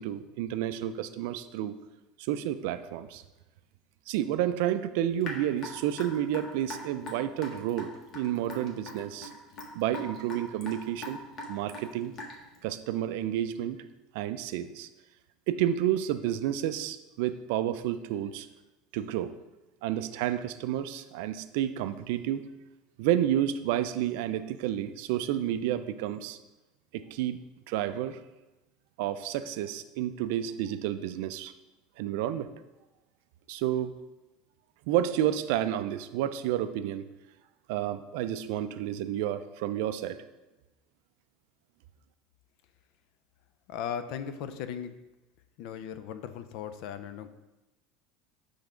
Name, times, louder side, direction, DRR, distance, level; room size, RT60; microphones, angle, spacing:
voice 1, 0.0-1.8 2.3-3.2 4.1-9.3 9.8-11.2 11.5-12.1 12.6-13.8 14.1-14.9 15.5-18.5 18.9-19.3 19.8-22.4 23.0-26.4 26.9-27.4 27.7-28.2 29.0-31.5 32.0-32.5 33.5-33.9 34.9-37.0 37.7-40.2, right 11 dB, 65° right, 11 dB, 0.3 m, -30 dB
Raindrop / Drip, 5.2-12.6, left 1 dB, 30° left, 0.9 m, -41 dB
voice 2, 43.7-45.0 45.6-47.3, left 8 dB, 55° left, 11 dB, 0.4 m, -37 dB
5.5 x 3.4 x 5.0 m, 1.0 s
cardioid pair, 170°, 0 cm